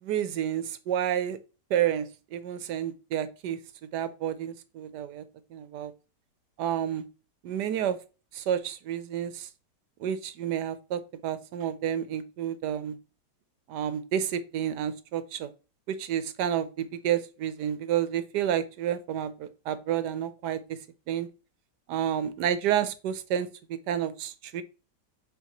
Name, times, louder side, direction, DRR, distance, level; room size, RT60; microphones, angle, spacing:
voice 1, 0.0-1.4 1.7-3.6 3.9-5.2 5.5-5.9 6.6-7.1 7.4-8.0 8.3-9.5 10.0-13.0 13.7-15.5 15.9-20.8 21.1-21.3 21.9-24.6, right 10 dB, 80° right, 1.3 m, -30 dB
8.0 x 4.5 x 3.0 m
omnidirectional pair, 1.8 m